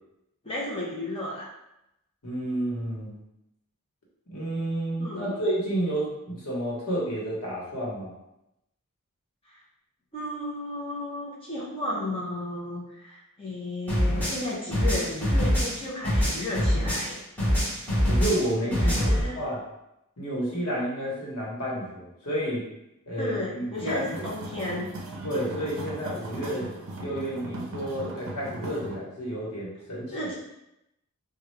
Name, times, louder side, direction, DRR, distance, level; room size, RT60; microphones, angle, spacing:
voice 1, 0.4-1.5 5.0-5.4 9.5-9.6 10.1-17.2 18.8-19.4 23.2-24.9 30.1-30.4, left 1 dB, 25° left, -6 dB, 0.8 m, -33 dB
voice 2, 2.2-3.2 4.3-8.1 18.1-19.6 20.2-22.6 23.1-24.2 25.2-26.7 27.0-30.3, right 1 dB, 90° left, -5 dB, 1.1 m, -30 dB
sound 1, 13.9-17.1 17.4-19.2, equal, 10° left, 1.1 m, -24 dB
sound 2, 23.7-29.0, right 1 dB, 60° right, 0.5 m, -38 dB
3.1 x 2.3 x 3.2 m, 0.86 s
head